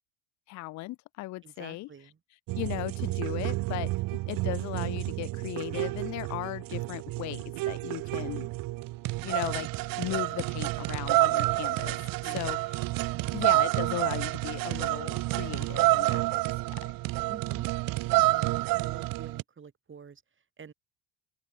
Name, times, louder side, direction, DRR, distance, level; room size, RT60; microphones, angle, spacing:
voice 1, 0.5-1.9 2.5-3.9 4.3-8.5 9.2-9.7 10.0-12.0 12.3-12.6 13.3-16.3 16.7-16.8, left 19 dB, 50° left, 0.4 m, -36 dB
voice 2, 1.4-2.2 12.2-12.6 13.1-13.4 17.3-17.7 18.1-20.7, right 6 dB, 30° right, 7.4 m, -48 dB
sound 1, 2.5-19.4, right 19 dB, 60° right, 0.7 m, -29 dB
open air
cardioid pair, 110°, 39 cm